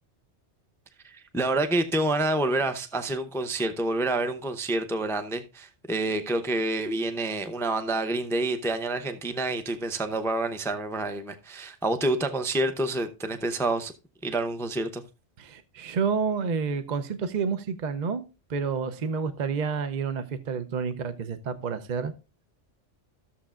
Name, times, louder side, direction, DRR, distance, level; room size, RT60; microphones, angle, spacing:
voice 1, 1.0-13.9 14.2-15.0, right 2 dB, 5° left, 0.4 m, -28 dB
voice 2, 15.4-18.2 18.5-22.1, right 5 dB, 45° right, 0.7 m, -29 dB
14.0 x 7.1 x 2.4 m
omnidirectional pair, 1.2 m